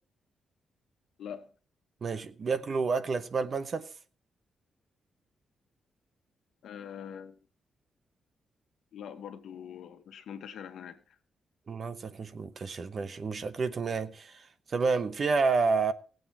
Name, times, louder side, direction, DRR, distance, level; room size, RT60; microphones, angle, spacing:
voice 1, 1.2-1.5 6.6-7.4 8.9-11.2, left 8 dB, 75° left, 1.3 m, -43 dB
voice 2, 2.0-3.9 11.7-15.9, right 4 dB, 40° right, 0.8 m, -30 dB
18.5 x 7.9 x 4.2 m
wide cardioid pair, 150°, 0 cm